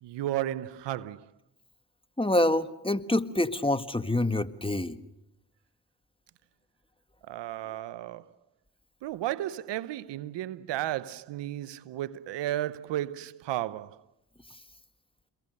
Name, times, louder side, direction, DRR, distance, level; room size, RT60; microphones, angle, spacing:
voice 1, 0.0-1.3 7.3-8.3 9.0-14.0, right 13 dB, 85° right, 0.9 m, -33 dB
voice 2, 2.2-5.0, left 1 dB, 15° left, 1.7 m, -26 dB
29.0 x 22.5 x 6.6 m
supercardioid pair, 40°, 42 cm